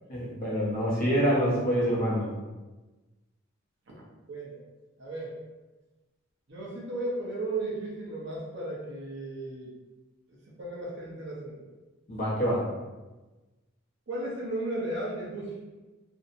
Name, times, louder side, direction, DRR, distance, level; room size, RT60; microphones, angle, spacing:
voice 1, 0.1-2.3 12.1-12.6, equal, 40° left, -6 dB, 0.7 m, -26 dB
voice 2, 4.3-4.6 5.0-5.4 6.5-9.7 10.5-11.7 14.1-15.6, right 2 dB, 55° right, -5 dB, 0.6 m, -35 dB
2.6 x 2.0 x 2.6 m, 1.2 s
head